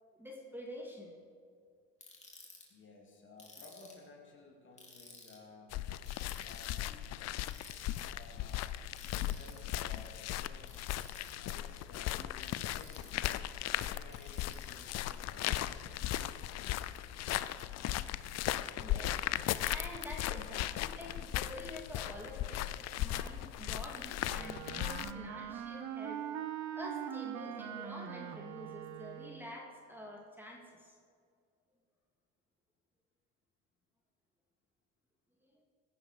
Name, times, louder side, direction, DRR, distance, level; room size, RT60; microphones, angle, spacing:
voice 1, 0.1-1.1 18.7-19.2 19.6-22.7 23.0-26.2 26.7-30.9 35.4-35.6, left 1 dB, 5° right, 0 dB, 2.3 m, -47 dB
Ratchet pawl, 2.0-2.6 3.4-4.1 4.8-5.4 6.1-6.8 7.5-8.0 9.0-9.6 10.7-11.3 12.4-13.2 14.1-14.9, left 3 dB, 20° left, 3.4 m, -54 dB
voice 2, 2.7-5.8 6.4-7.3 8.0-8.7 9.2-10.8 11.4-13.3 13.7-16.3, left 2 dB, 40° left, 0 dB, 2.9 m, -56 dB
sound 1, 5.7-25.1, left 13 dB, 55° left, 0.6 m, -37 dB
Wind instrument woodwind instrument, 24.2-29.6, right 10 dB, 60° right, 1.0 m, -42 dB
16.5 x 10.5 x 4.9 m, 2.2 s
supercardioid pair, 90°, 31 cm